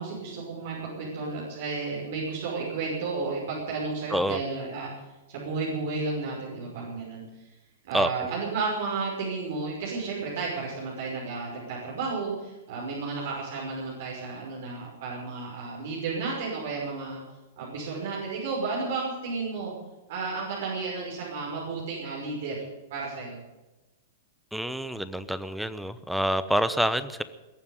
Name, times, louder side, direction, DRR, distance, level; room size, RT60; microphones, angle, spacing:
voice 1, 0.0-7.2 7.8-17.2 17.6-19.7 20.1-22.6 22.9-23.4, right 4 dB, 65° right, -5 dB, 5.6 m, -32 dB
voice 2, 4.1-4.4 7.9-8.3 24.5-27.2, equal, ahead, 14 dB, 0.9 m, -27 dB
21.0 x 7.3 x 9.4 m, 1.1 s
hypercardioid pair, 115°, 0 cm